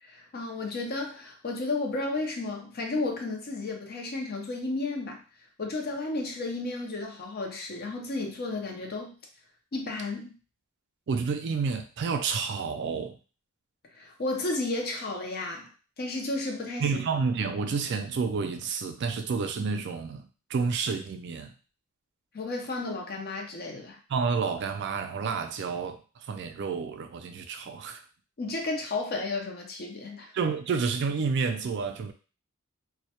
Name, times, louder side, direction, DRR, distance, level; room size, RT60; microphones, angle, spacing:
voice 1, 0.0-5.2 5.6-9.1 9.7-10.3 13.9-15.7 16.0-17.0 22.3-24.0 28.4-30.3, left 2 dB, 45° left, 2 dB, 0.5 m, -33 dB
voice 2, 11.1-13.2 16.8-20.2 20.5-21.5 24.1-26.0 26.3-28.0 30.3-32.1, right 5 dB, 50° right, 7 dB, 0.3 m, -29 dB
2.1 x 2.1 x 2.8 m, 0.35 s
head